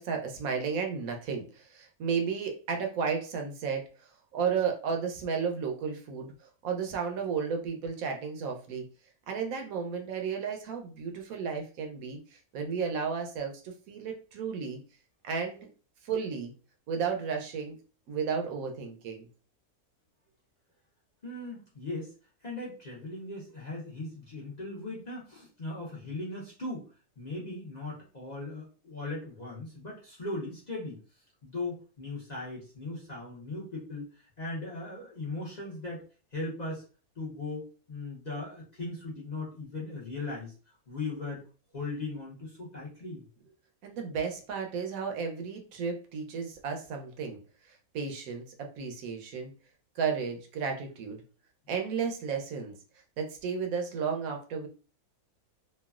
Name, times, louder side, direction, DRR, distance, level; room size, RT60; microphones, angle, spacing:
voice 1, 0.0-3.8 4.3-6.3 6.6-8.8 9.3-12.2 12.5-14.8 15.2-15.7 16.0-16.5 16.9-17.8 18.1-19.3 43.8-47.4 47.7-49.5 50.0-51.2 51.7-52.8 53.2-54.7, right 6 dB, 70° right, 3 dB, 1.0 m, -33 dB
voice 2, 21.2-22.1 22.4-31.0 31.4-36.0 36.3-36.8 37.2-40.5 40.9-41.4 41.7-43.2, left 2 dB, 35° left, -5 dB, 0.8 m, -38 dB
3.1 x 2.3 x 2.3 m, 0.35 s
omnidirectional pair, 1.6 m